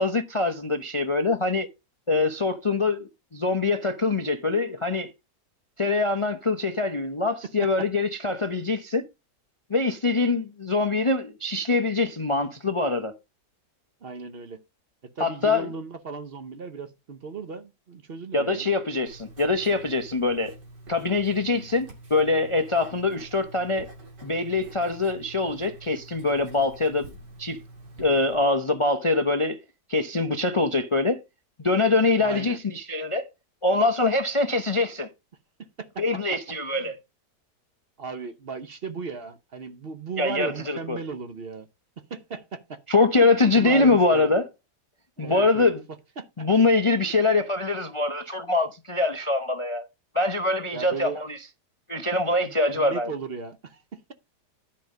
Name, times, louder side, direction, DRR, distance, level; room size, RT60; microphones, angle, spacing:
voice 1, 0.0-1.7 2.1-5.1 5.8-9.1 9.7-13.1 15.2-15.7 18.3-20.5 20.9-23.9 24.2-27.1 27.4-27.6 28.0-29.6 29.9-31.2 31.6-33.3 33.6-35.1 36.0-37.0 40.2-41.0 42.9-44.4 45.2-45.8 46.4-49.9 50.1-51.4 51.9-53.1, left 3 dB, 50° left, 0.3 m, -24 dB
voice 2, 14.0-14.6 15.0-18.7 21.5-21.7 32.2-32.6 35.6-36.0 36.7-36.9 38.0-41.7 42.0-42.8 43.5-44.3 45.2-45.7 46.2-46.5 50.7-51.2 52.4-54.1, right 5 dB, 45° right, 0.9 m, -36 dB
Writing, 19.1-28.4, right 2 dB, 85° right, 3.2 m, -46 dB
10.5 x 5.4 x 5.0 m
omnidirectional pair, 1.8 m